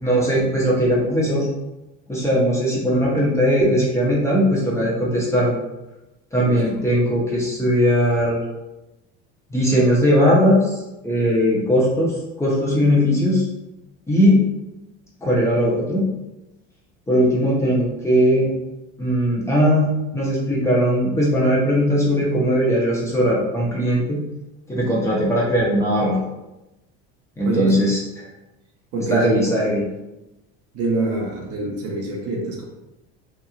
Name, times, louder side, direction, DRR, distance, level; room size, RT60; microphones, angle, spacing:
voice 1, 0.0-1.5 2.1-5.6 6.3-8.4 9.5-10.8 11.0-12.1 12.4-13.5 14.1-14.4 15.2-16.0 17.1-18.5 19.0-24.2 24.7-26.2 27.4-28.2 29.1-29.8, equal, 10° left, -5 dB, 0.7 m, -19 dB
voice 2, 27.4-27.9 28.9-29.7 30.7-32.6, right 2 dB, 50° right, -1 dB, 0.8 m, -25 dB
3.0 x 2.5 x 2.4 m, 0.97 s
supercardioid pair, 115°, 31 cm